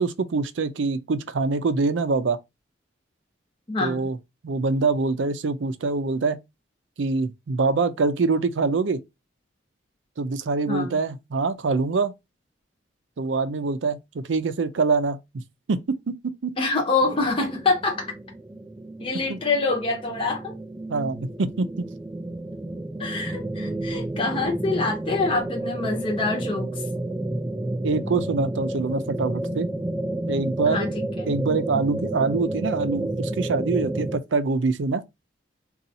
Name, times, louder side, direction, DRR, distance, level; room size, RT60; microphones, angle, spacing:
voice 1, 0.0-2.4 3.8-4.2 4.4-6.4 7.0-9.0 10.2-12.1 13.2-15.4 15.7-16.0 16.2-16.5 19.3-19.4 20.9-21.9 27.8-29.7 30.3-30.9 31.2-35.0, right 4 dB, 90° right, 0.5 m, -24 dB
voice 2, 3.7-4.1 10.7-11.0 16.6-18.1 19.0-20.5 23.0-26.8 30.7-31.0, left 3 dB, 30° left, 0.7 m, -25 dB
sound 1, 17.0-34.2, right 1 dB, 15° right, 0.3 m, -31 dB
4.0 x 2.4 x 2.7 m
head